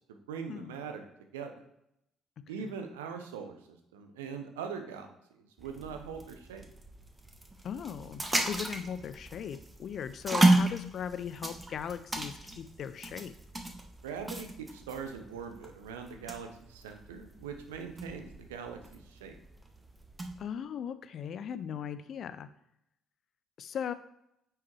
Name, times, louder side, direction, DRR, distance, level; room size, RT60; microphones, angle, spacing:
voice 1, 0.1-1.0 1.3-1.5 2.5-6.7 14.0-19.3, right 6 dB, 75° right, 6 dB, 0.7 m, -42 dB
sound 1, 5.6-20.4, right 2 dB, 15° right, 1.1 m, -34 dB
voice 2, 7.6-13.3 20.4-22.5 23.6-23.9, left 8 dB, 50° left, 13 dB, 0.5 m, -38 dB
9.3 x 4.7 x 3.1 m, 0.79 s
figure-of-eight pair, 45°, 0 cm